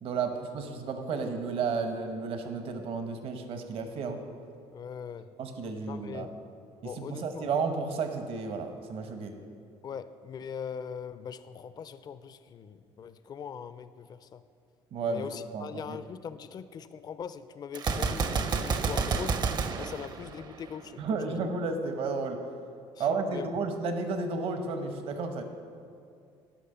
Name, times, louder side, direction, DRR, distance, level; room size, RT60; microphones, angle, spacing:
voice 1, 0.0-4.2 5.4-6.3 7.0-9.3 14.9-15.3 15.5-16.0 21.0-22.4 23.0-25.4, right 4 dB, 65° right, 6 dB, 0.9 m, -32 dB
voice 2, 4.7-5.3 5.9-6.4 6.8-7.4 9.8-14.4 15.1-19.4 19.8-21.5 23.0-23.5, left 7 dB, 40° left, 13 dB, 0.4 m, -41 dB
Gunshot gunfire, 17.7-20.9, right 5 dB, 40° right, 0.6 m, -30 dB
10.0 x 5.4 x 6.7 m, 2.3 s
cardioid pair, 95°, 11 cm